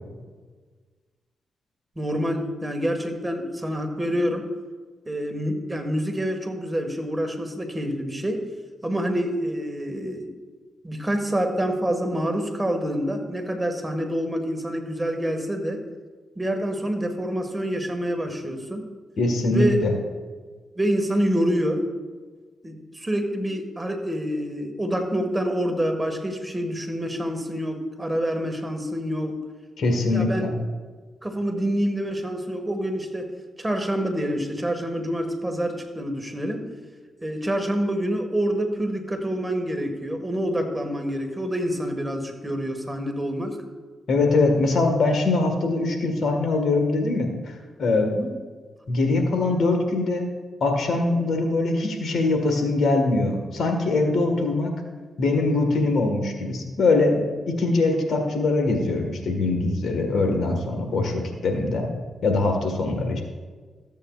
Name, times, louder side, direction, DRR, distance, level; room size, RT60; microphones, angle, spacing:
voice 1, 2.0-4.5 5.0-8.4 8.8-10.3 10.8-15.8 16.4-18.9 19.5-19.8 20.8-21.8 22.6-29.4 30.1-30.5 31.2-33.3 33.6-36.6 37.2-43.6 48.1-48.3, equal, 15° right, 4 dB, 1.6 m, -27 dB
voice 2, 19.2-19.9 29.8-30.5 44.1-48.1 48.9-50.3 50.6-54.7 55.2-61.9 62.2-63.2, left 3 dB, 70° left, 4 dB, 1.5 m, -22 dB
14.0 x 8.3 x 2.4 m, 1.5 s
supercardioid pair, 50°, 0 cm